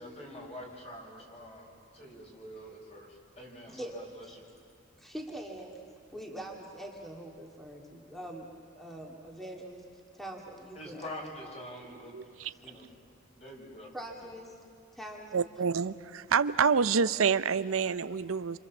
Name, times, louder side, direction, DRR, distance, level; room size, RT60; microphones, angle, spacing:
voice 1, 0.0-4.4 10.7-12.2 12.6-12.9 13.4-13.9 14.2-14.3, left 1 dB, 30° left, 0 dB, 5.6 m, -46 dB
voice 2, 5.0-5.8 6.1-8.5 8.7-9.8 10.1-11.3 12.7-12.8 13.9-14.6 14.9-15.4, right 1 dB, ahead, 0 dB, 2.3 m, -43 dB
voice 3, 12.1-12.5 15.3-18.6, right 6 dB, 90° right, 14 dB, 0.6 m, -27 dB
28.5 x 26.5 x 7.3 m, 2.1 s
head